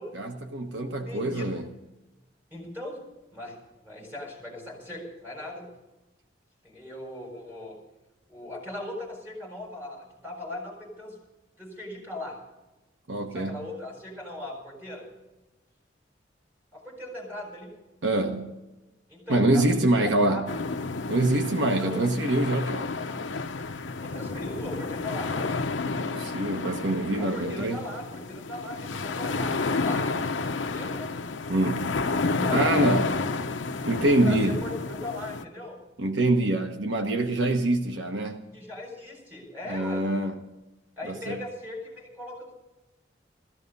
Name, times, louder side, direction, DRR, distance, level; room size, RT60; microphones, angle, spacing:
voice 1, 0.1-1.7 13.1-13.7 18.0-18.5 19.3-20.5 21.1-22.9 25.9-27.8 31.5-32.0 32.5-33.1 33.9-34.6 36.0-38.4 39.7-40.4 41.0-41.4, right 1 dB, 75° right, 5 dB, 1.2 m, -25 dB
voice 2, 0.7-1.5 2.5-3.0 3.3-5.6 6.6-7.8 8.3-11.1 11.6-12.4 13.3-15.1 16.7-17.7 19.1-20.5 21.8-22.0 24.0-25.5 27.2-30.1 30.4-31.1 32.3-33.4 34.2-35.8 38.5-40.0 41.0-42.5, left 1 dB, 10° right, -2 dB, 6.9 m, -39 dB
sound 1, 20.5-35.4, left 3 dB, 85° left, 0.8 m, -31 dB
16.0 x 14.0 x 5.5 m, 1.0 s
head